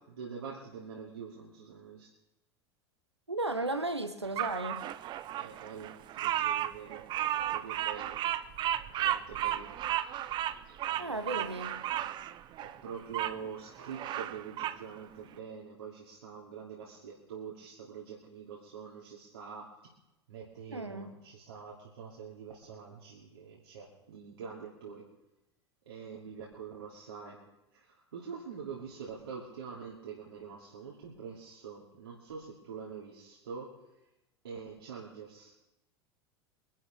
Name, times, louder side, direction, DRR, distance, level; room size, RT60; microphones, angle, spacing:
voice 1, 0.1-2.1 5.4-7.1 7.5-8.2 9.0-9.8 10.9-11.5 12.6-19.7 20.3-25.1 25.9-27.4 27.7-33.8 34.4-35.5, right 6 dB, 70° right, -5 dB, 2.9 m, -45 dB
voice 2, 3.3-4.9 11.0-11.8 20.7-21.2, right 2 dB, 85° right, 9 dB, 1.2 m, -35 dB
Bird vocalization bird call bird song, 4.4-13.4 13.8-14.8, right 12 dB, 35° right, 0.6 m, -34 dB
24.0 x 12.0 x 3.6 m, 0.93 s
figure-of-eight pair, 80°, 14 cm